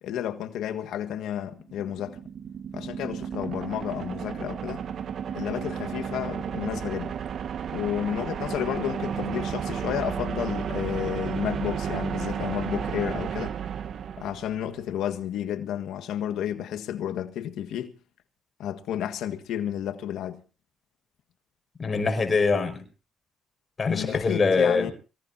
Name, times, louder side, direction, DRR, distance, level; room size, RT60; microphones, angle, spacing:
voice 1, 0.0-2.2 2.7-4.8 5.3-7.1 7.7-13.6 14.2-18.0 18.6-20.4 23.9-24.9, left 10 dB, 85° left, 1.6 m, -31 dB
sound 1, 1.6-14.8, right 8 dB, 60° right, 1.0 m, -33 dB
voice 2, 21.8-22.8 23.8-24.9, left 4 dB, 35° left, 5.5 m, -23 dB
24.5 x 17.5 x 2.7 m
cardioid pair, 90°, 0 cm